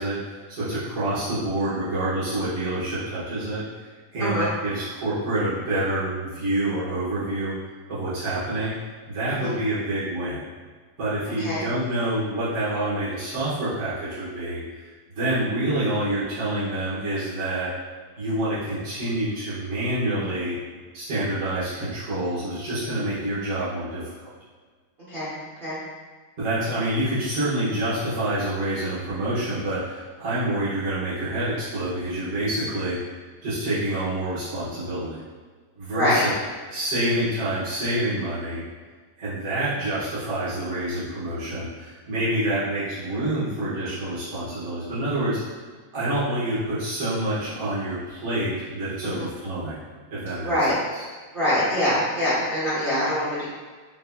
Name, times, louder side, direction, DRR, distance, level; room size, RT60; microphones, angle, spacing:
voice 1, 0.0-3.6 4.1-7.5 7.9-8.7 9.1-10.4 11.0-14.6 15.2-17.7 18.2-20.5 20.9-24.0 26.4-33.0 33.4-35.2 35.8-36.3 36.7-38.6 39.2-45.6 45.9-49.8 50.1-50.5 50.9-51.0, right 1 dB, 40° right, -12 dB, 1.2 m, -27 dB
voice 2, 4.2-4.5 9.3-9.5 11.4-11.6 25.1-25.3 25.6-25.8 35.9-36.2 49.0-49.3 50.3-50.7 51.3-53.4, left 1 dB, 75° right, -10 dB, 0.4 m, -24 dB
5.7 x 2.7 x 2.2 m, 1.5 s
omnidirectional pair, 2.3 m